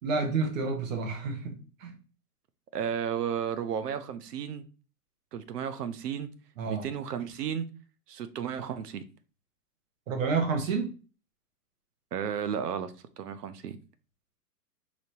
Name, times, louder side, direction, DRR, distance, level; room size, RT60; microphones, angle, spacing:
voice 1, 0.0-1.9 6.6-6.9 10.1-10.9, right 4 dB, 55° right, 1.3 m, -29 dB
voice 2, 2.7-4.6 5.3-6.3 6.7-7.7 8.1-9.0 12.1-13.8, right 8 dB, 80° right, 0.8 m, -33 dB
5.1 x 2.9 x 2.8 m
hypercardioid pair, 155°, 46 cm